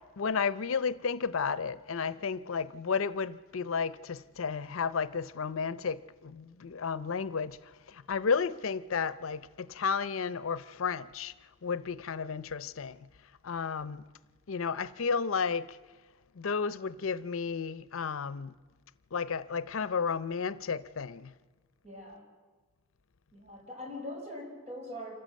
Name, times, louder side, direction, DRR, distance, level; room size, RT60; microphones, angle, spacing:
voice 1, 0.2-7.6 7.9-11.3 11.6-13.0 13.4-14.0 14.5-15.8 16.4-18.5 19.1-21.3, left 5 dB, 85° left, 0.6 m, -32 dB
voice 2, 21.8-22.2 23.3-25.2, left 1 dB, 30° right, 5.3 m, -42 dB
26.5 x 14.5 x 7.5 m
head